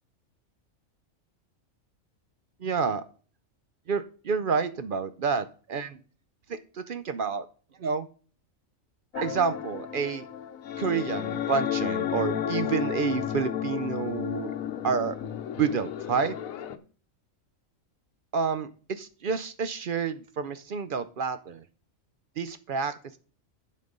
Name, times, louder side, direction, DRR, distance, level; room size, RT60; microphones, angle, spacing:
voice 1, 2.6-3.0 3.9-6.0 6.5-7.5 7.8-8.1 9.1-10.3 10.8-14.5 14.8-16.4 18.3-21.6 22.4-23.2, right 5 dB, 55° right, 11 dB, 0.6 m, -29 dB
sound 1, 9.1-16.8, left 10 dB, 85° left, 1.1 m, -32 dB
11.5 x 4.3 x 5.3 m, 0.40 s
omnidirectional pair, 1.4 m